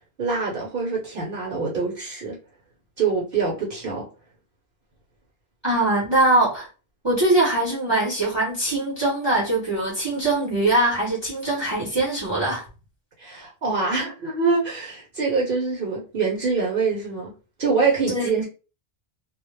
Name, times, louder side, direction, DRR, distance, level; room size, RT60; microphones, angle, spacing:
voice 1, 0.2-2.4 3.0-4.1 13.2-17.3 17.6-18.4, right 4 dB, 60° right, 0.8 m, -25 dB
voice 2, 5.6-6.7 7.0-12.6 18.1-18.4, right 2 dB, 30° right, 0.7 m, -22 dB
2.1 x 2.0 x 3.0 m
omnidirectional pair, 1.0 m